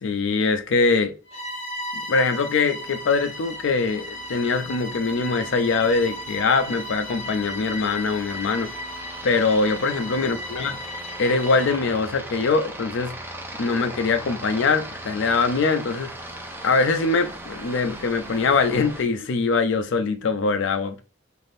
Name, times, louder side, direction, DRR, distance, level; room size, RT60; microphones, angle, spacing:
voice 1, 0.0-1.1 1.9-8.7 9.2-10.8 11.2-13.2 13.5-16.1 16.6-21.0, left 4 dB, 65° left, 0.4 m, -23 dB
Bowed string instrument, 1.3-11.9, left 1 dB, 30° left, 0.9 m, -36 dB
Aircraft, 2.7-19.0, right 1 dB, 10° right, 0.4 m, -39 dB
3.3 x 2.5 x 2.6 m
head